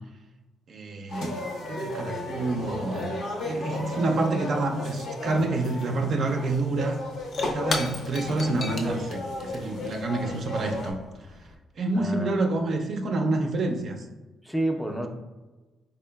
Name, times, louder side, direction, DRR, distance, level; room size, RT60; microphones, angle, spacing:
voice 1, 0.7-3.1 3.4-7.0 7.4-11.0 11.8-14.0, right 2 dB, 55° right, 4 dB, 0.4 m, -28 dB
sound 1, 1.1-10.9, left 1 dB, 90° left, 0.7 m, -34 dB
Shatter / Crushing, 6.7-11.6, left 3 dB, 55° left, 0.5 m, -37 dB
voice 2, 11.9-12.4 14.4-15.1, right 1 dB, ahead, 3 dB, 0.4 m, -29 dB
3.8 x 3.5 x 2.2 m, 1.2 s
cardioid pair, 90°, 0 cm